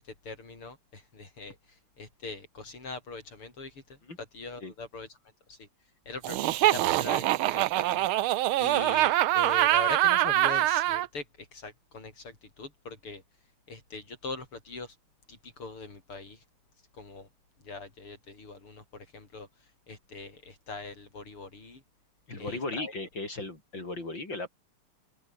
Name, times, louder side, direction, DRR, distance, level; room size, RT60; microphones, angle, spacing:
voice 1, 0.0-1.6 2.0-5.1 5.5-5.7 6.1-8.1 8.6-13.2 13.7-14.9 15.3-16.4 16.9-17.3 17.6-19.5 19.9-21.8 22.3-22.9, left 3 dB, 75° left, 6.6 m, -42 dB
Laughter, 6.2-11.1, right 15 dB, 75° right, 1.6 m, -24 dB
voice 2, 22.3-24.5, left 2 dB, 55° left, 6.9 m, -36 dB
omnidirectional pair, 2.4 m